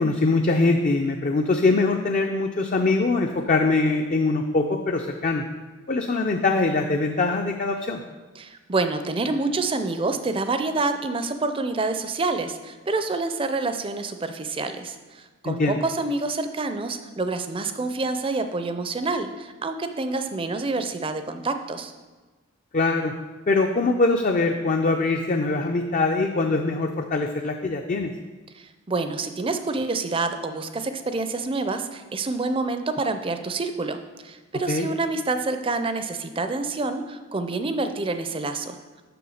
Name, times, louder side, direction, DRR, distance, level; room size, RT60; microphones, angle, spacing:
voice 1, 0.0-5.4 5.9-8.0 15.4-15.8 22.7-23.1 23.5-28.1 34.7-34.9, left 3 dB, 40° left, 3 dB, 0.4 m, -23 dB
voice 2, 8.4-21.9 28.5-38.8, right 3 dB, 25° right, 8 dB, 0.5 m, -27 dB
6.9 x 5.7 x 6.4 m, 1.3 s
head